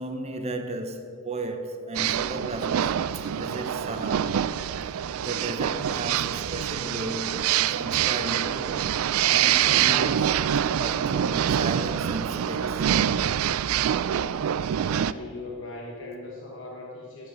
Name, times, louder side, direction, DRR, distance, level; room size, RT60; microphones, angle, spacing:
voice 1, 0.0-2.9 3.3-4.4 5.2-9.0 9.3-10.4 10.8-12.9, right 2 dB, 30° right, 1.0 m, -35 dB
sound 1, 1.9-15.1, right 9 dB, 80° right, 0.4 m, -25 dB
voice 2, 14.6-17.3, left 2 dB, 60° left, 1.3 m, -40 dB
12.0 x 5.1 x 8.0 m
head